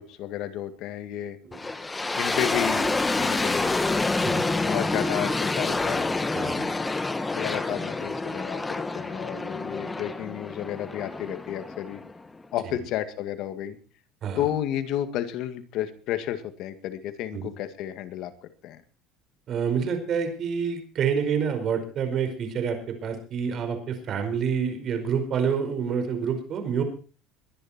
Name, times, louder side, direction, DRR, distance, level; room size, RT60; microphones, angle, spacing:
voice 1, 0.0-1.4 2.2-2.9 3.2-3.8 4.6-6.1 7.4-12.0 12.5-13.8 14.4-18.8, left 11 dB, 65° left, 10 dB, 2.1 m, -32 dB
sound 1, 1.5-12.5, left 3 dB, 15° left, 1.4 m, -28 dB
voice 2, 6.3-6.7 9.3-9.4 12.6-12.8 14.2-14.5 17.3-17.5 19.5-26.8, right 7 dB, 45° right, 7 dB, 5.0 m, -28 dB
22.5 x 10.5 x 4.5 m, 0.37 s
supercardioid pair, 105°, 0 cm